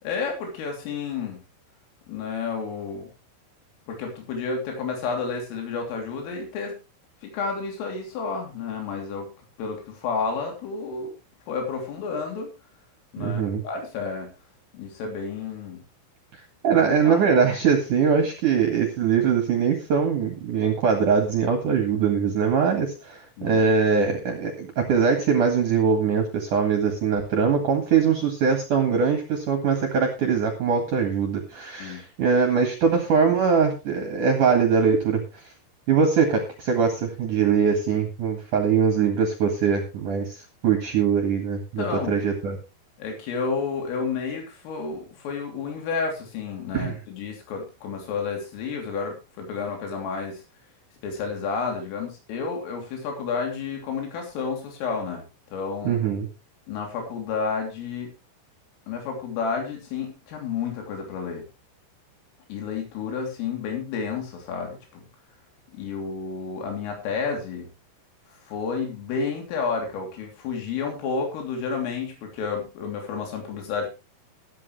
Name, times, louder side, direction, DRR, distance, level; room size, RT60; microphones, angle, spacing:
voice 1, 0.0-1.4 2.1-3.1 3.9-6.8 7.2-9.3 9.6-11.1 11.5-12.5 13.1-14.3 14.7-15.8 16.7-17.3 23.4-23.6 31.8-32.0 41.8-42.2 43.0-50.4 51.0-55.2 55.5-56.0 56.7-58.1 58.9-61.4 62.5-65.0 65.7-67.7 68.4-73.9, left 5 dB, 85° left, 2 dB, 5.8 m, -31 dB
voice 2, 13.2-13.6 16.6-35.5 35.9-42.6 46.7-47.0 55.8-56.3, right 6 dB, 55° right, 4 dB, 2.6 m, -22 dB
14.0 x 12.5 x 3.2 m, 0.28 s
omnidirectional pair, 5.7 m